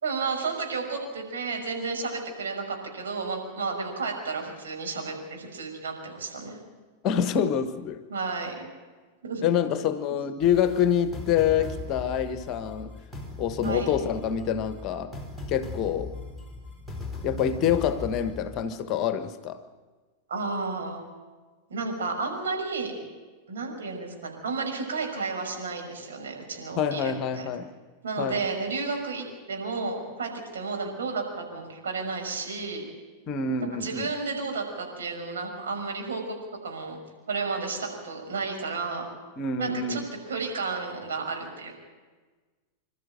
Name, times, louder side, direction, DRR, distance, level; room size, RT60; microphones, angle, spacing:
voice 1, 0.0-6.6 8.1-8.7 9.2-9.5 13.6-13.9 20.3-21.0 21.7-22.9 23.5-27.4 28.0-32.8 33.8-36.4 36.6-37.0 37.3-39.1 39.6-41.7, right 4 dB, 65° right, 1 dB, 6.0 m, -32 dB
voice 2, 7.0-8.0 9.4-12.9 13.4-15.1 15.5-16.1 17.2-19.6 26.7-27.7 28.2-28.4 33.3-34.1 39.4-40.0, left 8 dB, 35° left, 11 dB, 1.4 m, -26 dB
sound 1, 10.4-18.6, left 3 dB, ahead, 4.0 m, -39 dB
26.5 x 13.0 x 9.1 m, 1.3 s
figure-of-eight pair, 90°, 0 cm